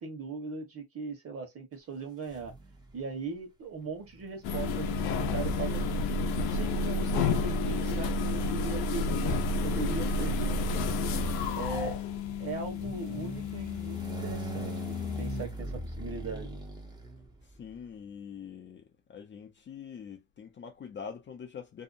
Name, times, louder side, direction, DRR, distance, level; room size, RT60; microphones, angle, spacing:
voice 1, 0.0-2.5 2.9-6.0 6.4-10.8 11.5-12.0 12.4-16.6, right 4 dB, 40° right, 1.2 m, -39 dB
sound 1, 2.3-3.0 4.0-17.7, right 1 dB, 10° right, 0.7 m, -43 dB
sound 2, 4.4-15.4, left 3 dB, 85° left, 0.6 m, -30 dB
voice 2, 17.4-21.8, left 7 dB, 30° left, 0.5 m, -44 dB
2.7 x 2.1 x 2.5 m
cardioid pair, 130°, 36 cm